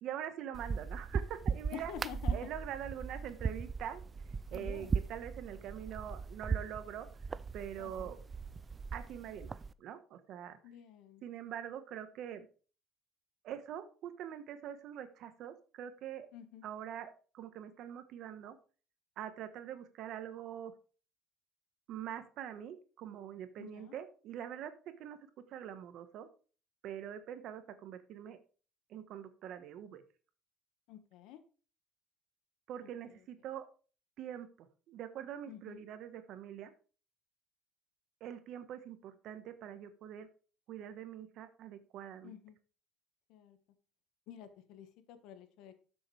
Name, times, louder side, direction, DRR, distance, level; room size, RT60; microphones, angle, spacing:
voice 1, 0.0-1.9 2.3-4.0 4.5-7.1 7.5-8.2 8.9-9.5 9.8-10.6 11.2-12.5 13.4-16.3 16.6-18.6 19.2-20.7 21.9-26.3 26.8-28.4 28.9-30.0 32.7-33.7 34.2-36.7 38.2-40.3 40.7-42.3, right 10 dB, 55° right, 9 dB, 1.3 m, -44 dB
sound 1, 0.5-9.7, right 5 dB, 20° right, 0.3 m, -38 dB
voice 2, 1.7-2.5 4.5-4.9 7.8-8.1 10.6-11.2 16.3-16.6 23.6-23.9 30.9-31.4 32.8-33.2 35.5-35.8 42.2-42.6 43.3-43.6 44.3-45.7, left 10 dB, 70° left, 9 dB, 1.5 m, -49 dB
12.5 x 7.0 x 3.4 m, 0.37 s
cardioid pair, 155°, 0 cm